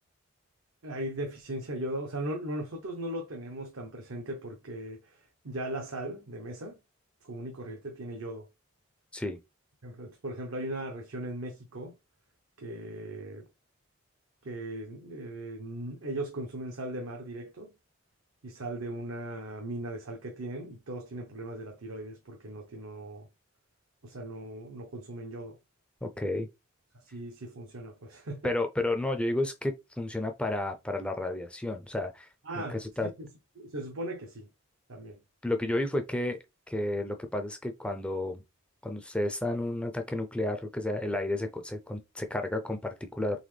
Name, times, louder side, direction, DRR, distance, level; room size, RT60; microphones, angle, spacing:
voice 1, 0.8-6.8 7.2-8.5 9.8-11.9 12.6-13.4 14.4-17.7 18.4-23.3 24.0-25.6 26.9-28.5 32.4-33.3 33.6-34.5 34.9-35.2, right 1 dB, 70° right, 0.7 m, -38 dB
voice 2, 26.0-26.5 28.4-32.3 32.7-33.1 35.4-36.4 36.7-38.4 38.8-43.4, left 1 dB, 5° left, 0.4 m, -31 dB
4.0 x 3.4 x 3.2 m
head